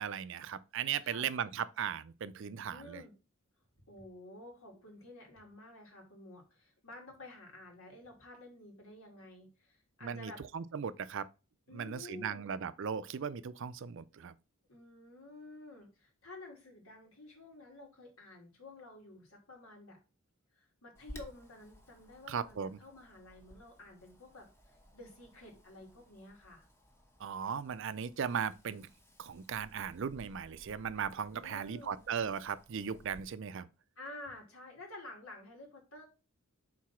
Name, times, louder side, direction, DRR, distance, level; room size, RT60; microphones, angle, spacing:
voice 1, 0.0-3.0 10.0-11.3 11.7-14.3 22.3-22.8 27.2-28.9 29.2-33.7, right 7 dB, 60° right, 0.4 m, -37 dB
voice 2, 2.7-3.1 3.8-10.4 11.7-12.5 14.7-20.0 20.5-26.7 31.3-32.0 34.0-36.0, left 2 dB, 80° left, 2.4 m, -51 dB
Wind, 20.9-33.2, equal, 10° left, 0.9 m, -58 dB
4.7 x 4.0 x 5.7 m
head